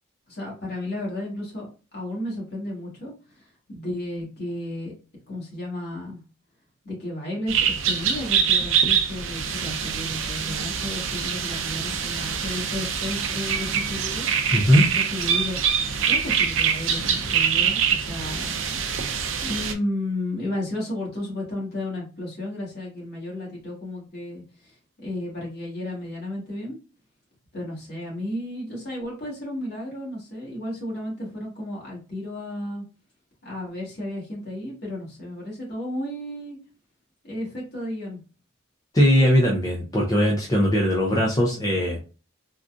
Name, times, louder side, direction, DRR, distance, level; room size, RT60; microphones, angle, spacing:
voice 1, 0.3-4.9 5.3-6.2 6.8-14.7 14.9-15.6 16.0-18.8 19.4-24.8 25.0-26.8 27.5-32.8 33.4-36.6 37.2-38.2, left 1 dB, 50° left, -3 dB, 1.7 m, -33 dB
sound 1, 7.5-19.7, right 7 dB, 65° right, 0.5 m, -24 dB
voice 2, 14.5-14.8 38.9-42.0, equal, 15° left, -2 dB, 0.4 m, -19 dB
3.8 x 2.4 x 2.4 m, 0.34 s
head